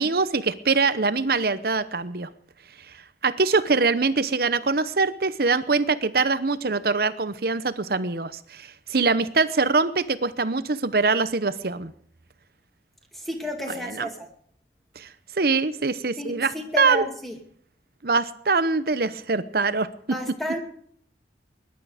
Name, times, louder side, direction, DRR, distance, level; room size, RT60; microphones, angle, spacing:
voice 1, 0.0-2.3 3.2-11.9 13.7-14.1 15.0-15.1 15.4-17.0 18.0-19.9, right 4 dB, 55° right, 14 dB, 0.8 m, -23 dB
voice 2, 13.1-14.1 16.2-17.3 20.1-20.6, equal, ahead, 2 dB, 2.3 m, -31 dB
21.0 x 11.5 x 5.1 m, 0.62 s
head